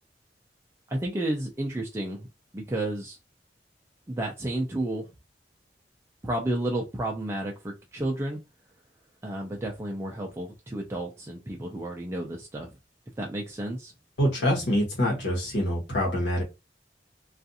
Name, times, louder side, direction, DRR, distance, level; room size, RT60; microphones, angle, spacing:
voice 1, 0.9-2.3 2.5-3.2 4.1-5.1 6.2-8.4 9.2-12.7 13.2-13.9, right 1 dB, 15° right, 0 dB, 0.4 m, -31 dB
voice 2, 14.2-16.4, equal, 85° left, -3 dB, 1.1 m, -25 dB
2.4 x 2.4 x 2.7 m, 0.25 s
head